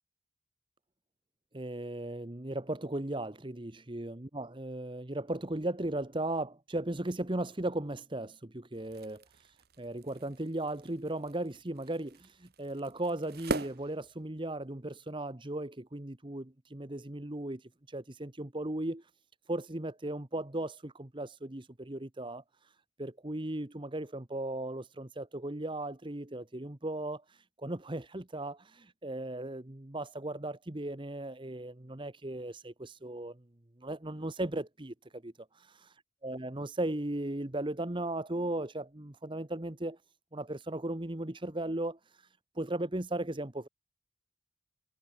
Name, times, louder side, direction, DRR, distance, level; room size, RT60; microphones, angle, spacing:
voice 1, 1.5-19.1 19.5-33.4 33.8-35.7 36.2-40.0 40.3-43.7, right 1 dB, 25° right, 1.1 m, -37 dB
sound 1, 8.7-14.7, right 2 dB, 50° right, 1.3 m, -43 dB
head